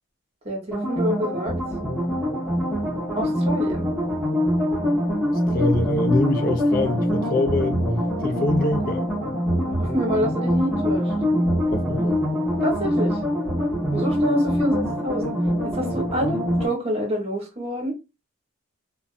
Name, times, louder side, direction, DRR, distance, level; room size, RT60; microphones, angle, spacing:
voice 1, 0.4-1.5 3.1-3.9 9.7-11.1 12.6-13.2 13.9-15.3 15.7-17.9, equal, 30° right, 1.0 m, -27 dB
sound 1, 0.7-16.7, equal, ahead, 1.0 m, -24 dB
voice 2, 5.5-7.8 8.2-9.1 11.7-12.2, left 2 dB, 45° left, 0.4 m, -24 dB
2.5 x 2.2 x 2.4 m
head